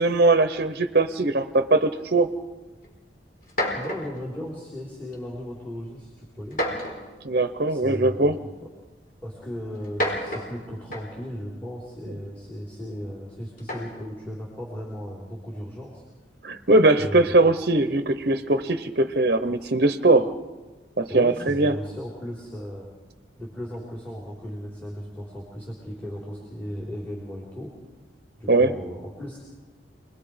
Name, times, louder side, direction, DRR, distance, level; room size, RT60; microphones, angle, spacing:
voice 1, 0.0-2.3 7.2-8.4 16.4-20.3 21.0-21.7 28.5-28.7, right 2 dB, 55° right, 9 dB, 0.9 m, -20 dB
sound 1, 2.8-2.9 3.4-4.2 5.1-5.4 6.5-7.2 8.3-8.4 9.7-11.3 13.6-14.1, equal, 50° left, 4.5 m, -30 dB
voice 2, 3.7-6.6 7.7-8.5 9.2-16.0 17.0-17.4 21.1-22.9 23.4-27.7 28.4-29.4, equal, 10° left, -4 dB, 3.9 m, -36 dB
27.0 x 21.0 x 5.1 m, 1.2 s
head